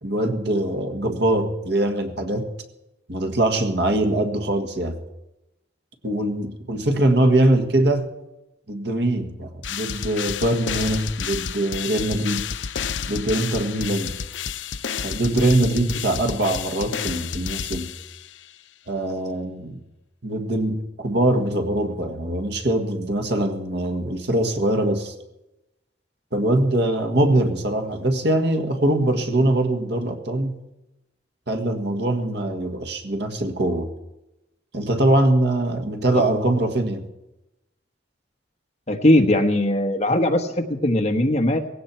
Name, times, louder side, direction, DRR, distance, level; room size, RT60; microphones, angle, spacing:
voice 1, 0.0-2.5 3.1-5.0 6.0-8.1 8.7-12.4 13.1-14.2 15.0-17.9 18.9-19.8 20.2-25.1 26.3-30.6 31.5-33.9 34.7-37.0, right 1 dB, 65° right, 5 dB, 1.7 m, -22 dB
sound 1, 9.6-18.5, left 7 dB, 80° left, 0.6 m, -30 dB
voice 2, 38.9-41.6, left 1 dB, 35° left, 6 dB, 1.3 m, -20 dB
19.0 x 16.0 x 4.4 m, 0.96 s
head